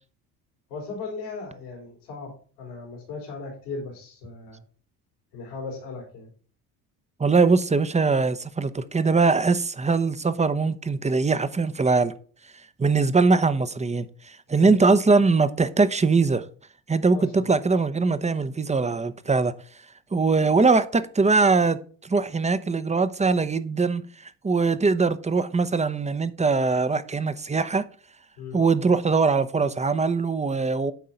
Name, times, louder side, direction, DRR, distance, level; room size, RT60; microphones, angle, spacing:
voice 1, 0.7-4.6 5.3-6.3 14.6-14.8 17.1-17.5 28.4-28.6, left 4 dB, 90° left, 3.6 m, -37 dB
voice 2, 7.2-12.1 12.8-16.4 16.9-19.5 20.1-27.9 28.5-30.9, right 4 dB, 15° right, 0.8 m, -22 dB
9.3 x 3.8 x 5.7 m
supercardioid pair, 70°, 43 cm